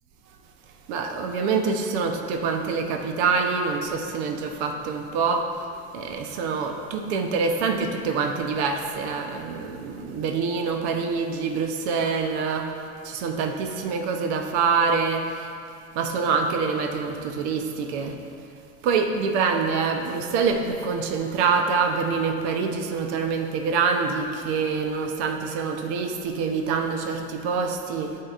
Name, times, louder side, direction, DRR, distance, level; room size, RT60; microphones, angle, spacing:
voice 1, 0.9-5.7 5.9-15.5 15.9-18.2 18.8-28.2, right 5 dB, 75° right, 4 dB, 0.9 m, -25 dB
14.0 x 4.8 x 2.5 m, 2.5 s
supercardioid pair, 100°, 33 cm